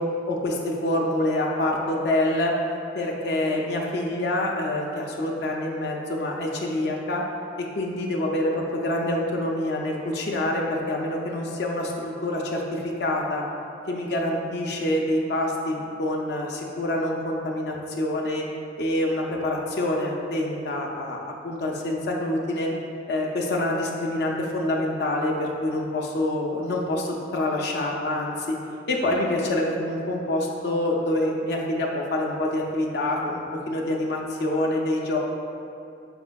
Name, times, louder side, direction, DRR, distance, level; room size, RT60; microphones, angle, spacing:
voice 1, 0.3-2.6 2.9-7.2 7.6-13.4 13.9-18.5 18.8-22.7 23.1-28.6 28.9-35.2, left 1 dB, 60° left, -1 dB, 0.4 m, -26 dB
4.9 x 4.2 x 2.2 m, 2.5 s
head